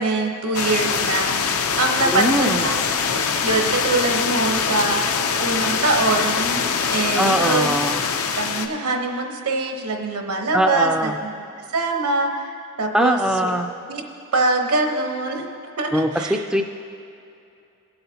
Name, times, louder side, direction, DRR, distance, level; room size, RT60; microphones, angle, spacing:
voice 1, 0.0-2.6 3.4-7.7 8.3-11.3 11.7-12.5 12.8-13.2 13.9-14.0 14.3-15.4 15.8-16.4, right 3 dB, 80° right, 3 dB, 1.0 m, -23 dB
sound 1, 0.5-8.7, left 6 dB, 80° left, 0.6 m, -23 dB
voice 2, 2.1-2.7 7.2-8.0 10.5-11.1 12.9-13.7 15.9-16.6, equal, 5° right, 4 dB, 0.3 m, -21 dB
17.5 x 7.9 x 2.8 m, 2.6 s
head